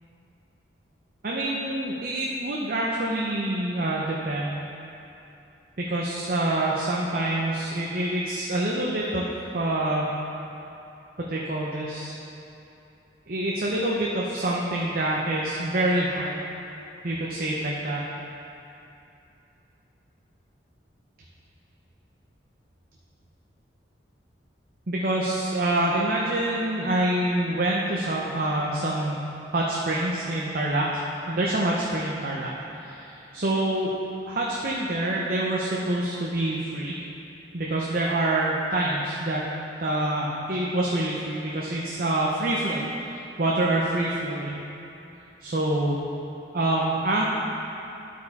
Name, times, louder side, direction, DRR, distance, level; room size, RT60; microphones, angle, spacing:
voice 1, 1.2-4.6 5.8-9.2 9.5-10.1 11.3-12.2 13.3-16.4 17.0-18.0 24.9-29.2 29.5-33.9 34.2-37.0 37.5-39.5 39.8-44.6 45.4-46.0 46.5-47.2, right 1 dB, 50° right, -4 dB, 0.7 m, -26 dB
11.5 x 4.7 x 4.1 m, 2.8 s
head